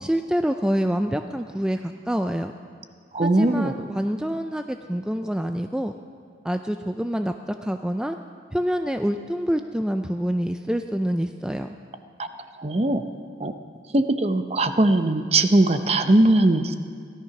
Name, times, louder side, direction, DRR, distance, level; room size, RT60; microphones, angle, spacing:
voice 1, 0.0-2.5 3.2-5.9 6.4-7.3 7.6-8.2 8.5-11.7, equal, 5° right, 6 dB, 0.3 m, -26 dB
voice 2, 3.1-3.8 12.2-12.3 12.6-13.0 13.4-13.5 13.9-16.7, right 2 dB, 35° right, 9 dB, 0.7 m, -20 dB
17.0 x 12.5 x 5.9 m, 2.1 s
head